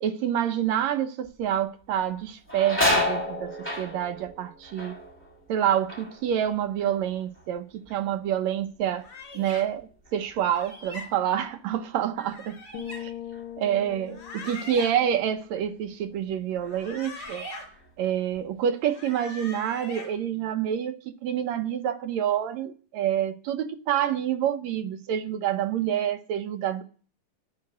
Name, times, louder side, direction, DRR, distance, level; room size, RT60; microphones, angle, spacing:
voice 1, 0.0-5.0 5.5-7.7 7.9-9.1 9.3-12.6 13.0-13.1 13.6-17.4 18.0-26.8, right 10 dB, 70° right, 1.9 m, -27 dB
sound 1, 1.3-1.6 2.0-7.6 7.9-8.5 9.0-11.9 12.2-12.3 13.3-13.5 14.0-15.1 15.5-15.7 16.3-16.9 17.2-18.4, left 1 dB, 5° left, 2.1 m, -32 dB
sound 2, 9.0-9.6 10.5-11.1 12.2-13.0 14.0-14.9 16.6-17.6 18.8-20.1, left 1 dB, 35° left, 5.0 m, -41 dB
sound 3, 12.7-16.5, left 10 dB, 90° left, 2.7 m, -42 dB
11.5 x 5.8 x 8.4 m
omnidirectional pair, 3.7 m